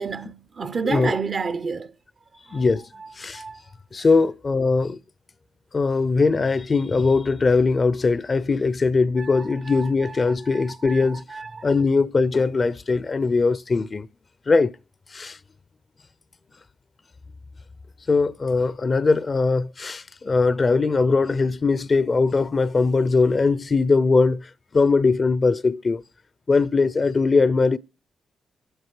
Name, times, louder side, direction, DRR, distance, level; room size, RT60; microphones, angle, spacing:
voice 1, 0.0-1.9 2.5-2.7 3.0-3.1 3.3-3.6 3.9-4.1 9.2-11.7, right 5 dB, 55° right, 0.7 m, -31 dB
voice 2, 2.5-2.8 3.2-3.4 3.9-5.0 5.7-11.2 11.6-14.1 14.5-14.7 15.1-15.4 18.1-26.0 26.5-27.8, left 4 dB, 45° left, 0.5 m, -20 dB
24.5 x 8.1 x 3.2 m
hypercardioid pair, 40°, 0 cm